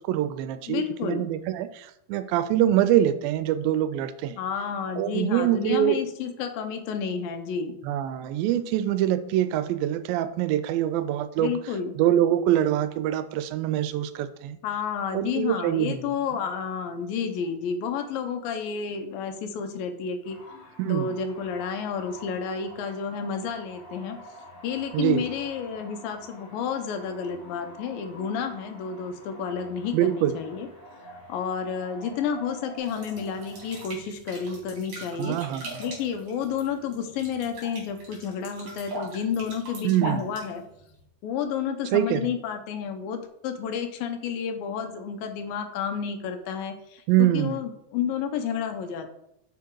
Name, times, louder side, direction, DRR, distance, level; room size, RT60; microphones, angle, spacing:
voice 1, 0.0-4.4 5.0-6.0 7.9-11.5 12.0-14.6 15.1-16.0 20.8-21.1 24.9-25.2 29.9-30.3 35.2-35.7 39.8-40.2 41.9-42.2 47.1-47.6, right 12 dB, 85° right, 12 dB, 2.3 m, -24 dB
voice 2, 0.7-1.3 4.4-7.7 11.4-12.0 14.6-20.4 20.9-24.2 24.6-30.7 31.3-35.4 35.8-40.6 41.2-49.1, left 7 dB, 80° left, 7 dB, 2.5 m, -31 dB
sound 1, 20.2-33.9, equal, 50° left, 2.8 m, -48 dB
sound 2, 32.8-41.0, right 2 dB, 45° right, 3.6 m, -40 dB
6.8 x 5.8 x 4.6 m, 0.78 s
omnidirectional pair, 4.2 m